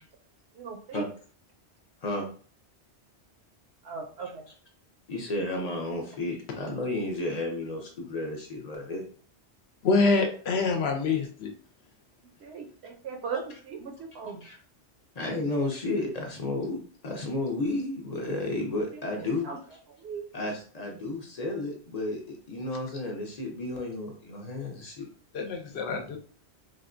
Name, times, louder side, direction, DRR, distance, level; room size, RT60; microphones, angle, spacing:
voice 1, 0.6-1.0 3.8-4.4 12.4-14.4 19.4-19.6 20.0-20.3, right 5 dB, 75° right, 3 dB, 0.8 m, -37 dB
voice 2, 5.1-9.0 14.4-14.6 15.1-19.5 20.3-25.1, left 2 dB, 45° left, 1 dB, 0.6 m, -32 dB
voice 3, 9.8-11.5 25.3-26.2, left 4 dB, 70° left, 4 dB, 0.8 m, -25 dB
3.5 x 2.1 x 2.5 m, 0.43 s
omnidirectional pair, 1.2 m